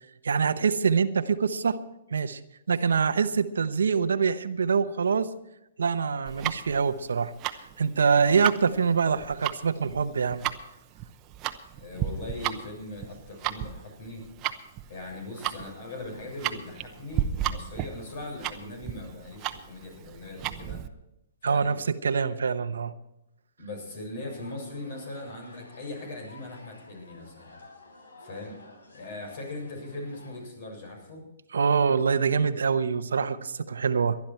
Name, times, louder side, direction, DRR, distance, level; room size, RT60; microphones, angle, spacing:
voice 1, 0.2-1.8 2.1-2.4 2.7-5.3 5.8-7.3 7.8-10.4 21.4-22.9 31.5-34.2, right 6 dB, 85° right, 12 dB, 0.9 m, -25 dB
Tick-tock, 6.2-20.9, right 11 dB, 30° right, 0.9 m, -34 dB
voice 2, 11.7-14.2 14.9-20.8 21.4-21.7 23.6-27.5 28.2-28.6 28.9-31.2, left 2 dB, 55° left, 3 dB, 7.2 m, -40 dB
sound 1, 24.3-30.4, left 2 dB, 90° left, 3.8 m, -52 dB
19.5 x 12.0 x 4.5 m, 0.86 s
hypercardioid pair, 135°, 0 cm